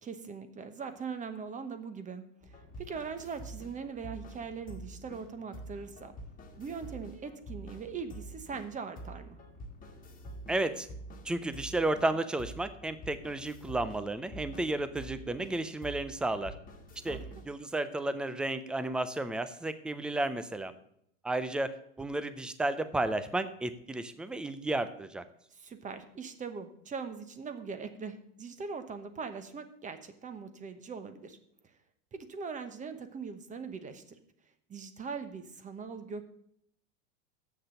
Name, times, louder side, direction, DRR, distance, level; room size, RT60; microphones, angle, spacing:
voice 1, 0.0-6.1 6.6-9.4 17.0-17.4 25.5-31.4 31.6-31.7 32.1-34.2 34.7-36.3, right 5 dB, 20° right, 10 dB, 1.0 m, -41 dB
sound 1, 2.4-17.6, right 1 dB, 20° left, 1.7 m, -47 dB
voice 2, 10.5-10.9 11.2-16.5 17.0-20.7 21.2-25.2, right 2 dB, ahead, 12 dB, 0.3 m, -33 dB
7.7 x 6.6 x 7.8 m, 0.72 s
supercardioid pair, 120°, 38 cm